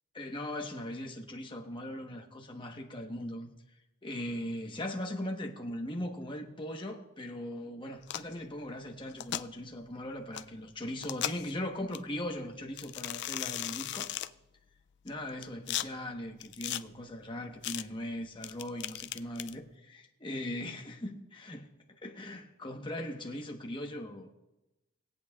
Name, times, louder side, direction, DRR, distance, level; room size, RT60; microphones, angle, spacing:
voice 1, 0.1-3.5 4.0-14.1 15.0-21.7 22.0-24.3, left 1 dB, 25° left, 1.1 m, -39 dB
sound 1, 8.0-8.3 9.1-9.4 10.3-10.4 11.0-11.5 11.9-12.0 12.8-14.3 15.1-15.9 16.4-16.8 17.6-17.8 18.4-19.5, left 13 dB, 55° left, 0.3 m, -36 dB
21.5 x 8.6 x 2.4 m
head